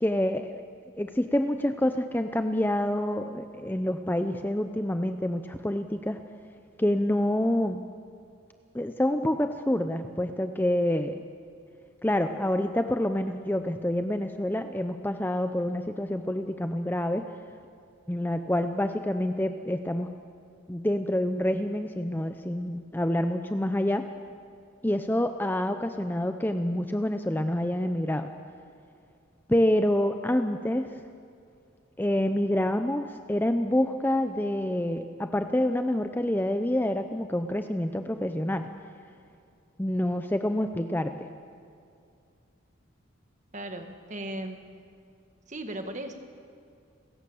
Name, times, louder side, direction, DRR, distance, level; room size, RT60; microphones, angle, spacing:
voice 1, 0.0-0.6 1.0-6.2 6.8-7.8 8.7-11.2 12.0-17.3 18.1-20.1 20.7-24.1 24.8-28.3 29.5-30.9 32.0-38.7 39.8-41.3, left 1 dB, 10° left, 7 dB, 0.6 m, -27 dB
voice 2, 43.5-44.6 45.5-46.1, right 1 dB, 35° right, 6 dB, 1.6 m, -36 dB
29.5 x 16.0 x 7.1 m, 2.4 s
head